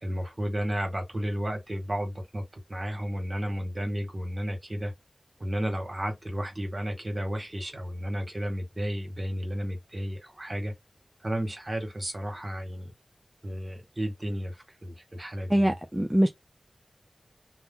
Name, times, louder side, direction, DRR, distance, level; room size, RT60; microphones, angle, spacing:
voice 1, 0.0-4.9 5.4-10.7 11.2-12.9 13.4-14.5 14.8-15.7, equal, 40° right, 1.5 m, -32 dB
voice 2, 15.5-16.3, equal, 10° right, 0.5 m, -23 dB
2.7 x 2.1 x 3.7 m
cardioid pair, 40°, 0 cm